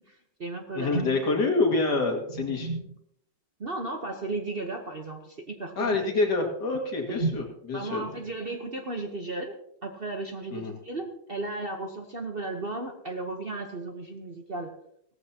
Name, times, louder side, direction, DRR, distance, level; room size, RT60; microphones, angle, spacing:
voice 1, 0.1-1.1 2.3-2.9 3.6-6.0 7.1-7.3 7.7-14.7, right 2 dB, 40° right, 3 dB, 1.0 m, -34 dB
voice 2, 0.8-2.7 5.8-8.0 10.5-10.7, left 3 dB, 65° left, 2 dB, 2.6 m, -26 dB
17.0 x 14.5 x 2.8 m, 0.73 s
omnidirectional pair, 2.0 m